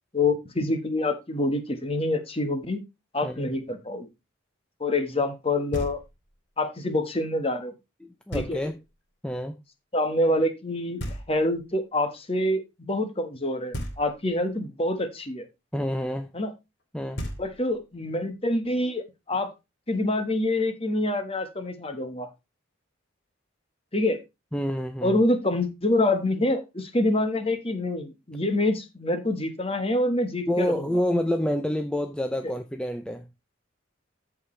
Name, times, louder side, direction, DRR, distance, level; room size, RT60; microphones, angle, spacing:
voice 1, 0.1-2.8 3.1-4.1 4.8-6.0 6.6-7.7 8.3-8.6 9.9-11.0 11.3-15.5 16.3-16.5 17.4-19.5 19.9-22.3 23.9-24.2 25.0-30.7, left 2 dB, 30° left, 1.4 m, -26 dB
Knock, 5.7-6.4 8.3-9.0 11.0-11.8 13.7-14.5 16.8-16.9 17.2-18.0, equal, 55° left, 2.5 m, -36 dB
voice 2, 8.0-8.8 9.2-9.6 15.7-16.3 16.9-17.2 24.5-25.2 30.5-33.3, equal, 5° left, 0.6 m, -28 dB
14.5 x 4.8 x 3.2 m
head